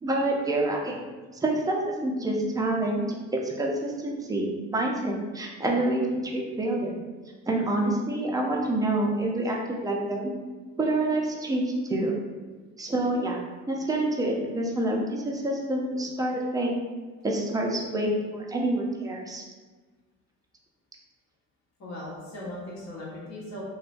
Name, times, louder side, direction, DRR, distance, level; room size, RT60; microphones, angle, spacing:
voice 1, 0.0-1.0 1.4-3.0 3.3-6.9 7.5-10.3 10.8-12.1 12.8-13.4 13.7-16.7 17.2-19.4, right 1 dB, 10° right, -1 dB, 0.5 m, -27 dB
voice 2, 21.8-23.6, left 1 dB, 45° left, -7 dB, 1.1 m, -38 dB
3.0 x 2.3 x 2.5 m, 1.3 s
hypercardioid pair, 70°, 39 cm